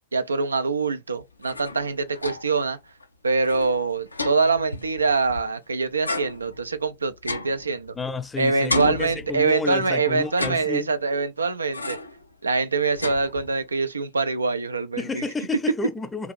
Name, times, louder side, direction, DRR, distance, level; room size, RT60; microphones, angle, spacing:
voice 1, 0.1-2.8 3.2-8.0 8.4-12.0 12.4-15.2, right 4 dB, 75° right, 0.3 m, -24 dB
sound 1, 1.2-2.7 3.0-3.1 3.4-5.6 6.0-8.3 8.7-9.8 10.2-11.2 11.7-12.2 12.6-13.7, left 2 dB, 80° left, 0.3 m, -33 dB
voice 2, 8.0-10.9 15.0-16.3, left 4 dB, 15° left, 0.4 m, -30 dB
2.7 x 2.4 x 3.0 m
figure-of-eight pair, 90°, 0 cm